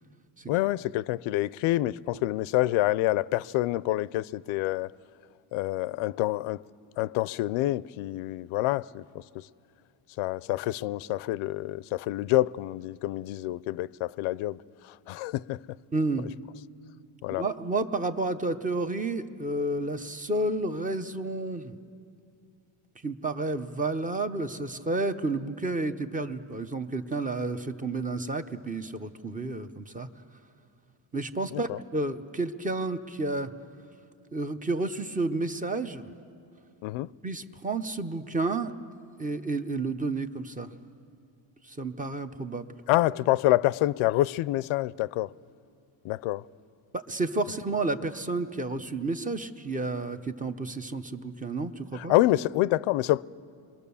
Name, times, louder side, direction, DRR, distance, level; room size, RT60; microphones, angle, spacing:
voice 1, 0.5-4.9 5.5-6.6 7.0-9.0 9.3-9.5 10.2-14.6 14.9-15.6 17.2-17.4 31.5-31.8 36.8-37.1 42.9-45.3 46.0-46.5 51.9-53.2, left 16 dB, 85° left, 0.6 m, -27 dB
voice 2, 15.9-16.3 17.3-21.7 23.0-30.1 31.1-33.5 34.3-36.1 37.2-38.7 39.2-40.7 41.6-42.7 46.9-52.1, right 2 dB, 15° right, 0.8 m, -31 dB
29.5 x 23.0 x 7.0 m
cardioid pair, 135°, 47 cm